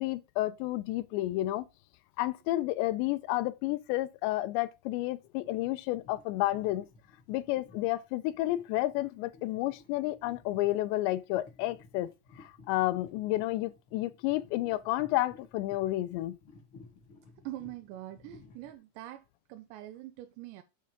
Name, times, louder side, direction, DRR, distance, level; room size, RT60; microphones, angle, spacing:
voice 1, 0.0-1.7 2.2-6.9 7.3-12.1 12.4-16.4, left 16 dB, 85° left, 2.9 m, -31 dB
sound 1, 5.2-18.7, left 3 dB, 45° left, 1.8 m, -57 dB
voice 2, 17.4-20.6, right 15 dB, 85° right, 2.9 m, -44 dB
7.9 x 5.6 x 5.2 m
omnidirectional pair, 5.0 m